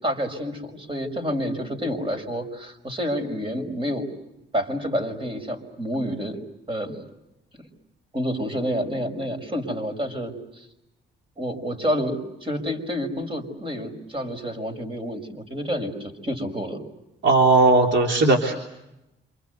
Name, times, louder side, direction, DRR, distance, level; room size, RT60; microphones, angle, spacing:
voice 1, 0.0-4.1 4.5-6.4 6.7-7.0 7.6-7.7 8.1-10.7 11.4-16.8, equal, 25° right, 7 dB, 5.9 m, -29 dB
voice 2, 17.2-18.5, right 3 dB, 65° right, 2 dB, 3.6 m, -17 dB
28.0 x 25.5 x 8.2 m, 0.91 s
cardioid pair, 90°, 20 cm